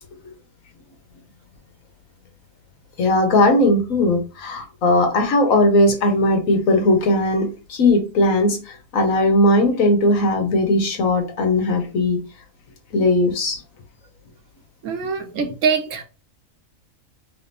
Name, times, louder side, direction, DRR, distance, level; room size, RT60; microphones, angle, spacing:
voice 1, 3.0-8.6 8.9-12.2 12.9-13.6, left 1 dB, 85° left, 1.4 m, -18 dB
voice 2, 14.8-16.0, right 5 dB, 75° right, 1.2 m, -23 dB
3.6 x 3.3 x 2.6 m
omnidirectional pair, 1.4 m